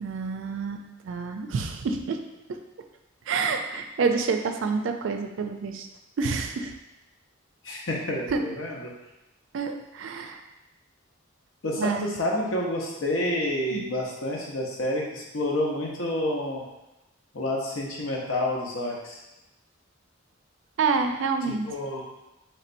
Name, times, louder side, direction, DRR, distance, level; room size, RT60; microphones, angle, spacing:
voice 1, 0.0-2.2 2.5-2.6 3.3-5.9 6.2-6.7 8.3-8.4 9.5-10.4 11.8-12.1 13.7-13.9 20.8-21.7, right 4 dB, 70° right, 5 dB, 0.4 m, -28 dB
voice 2, 7.6-8.9 11.6-16.6 17.3-19.2 21.5-22.0, left 1 dB, 90° left, -2 dB, 0.8 m, -29 dB
4.2 x 3.2 x 2.5 m, 0.96 s
head